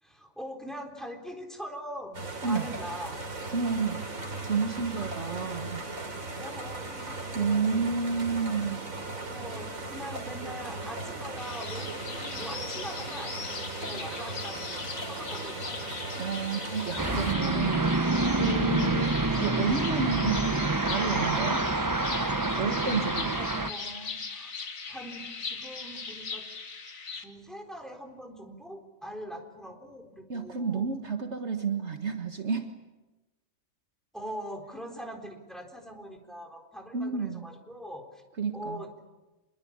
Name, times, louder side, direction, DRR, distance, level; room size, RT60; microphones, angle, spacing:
voice 1, 0.0-3.2 6.4-8.1 9.3-11.9 12.3-15.9 23.2-26.4 27.1-31.2 34.1-38.2 38.5-38.9, equal, ahead, 3 dB, 3.9 m, -42 dB
sound 1, 2.1-17.3, right 2 dB, 85° right, 3.5 m, -38 dB
voice 2, 3.5-5.8 7.4-8.8 16.2-21.7 22.6-23.4 30.3-32.7 36.9-37.5 38.4-38.8, right 5 dB, 55° right, 5 dB, 1.8 m, -31 dB
sound 2, 11.4-27.2, left 4 dB, 80° left, 2.2 m, -39 dB
sound 3, 17.0-23.7, right 2 dB, 20° right, 0.7 m, -27 dB
26.5 x 22.5 x 8.7 m, 1.1 s
omnidirectional pair, 1.4 m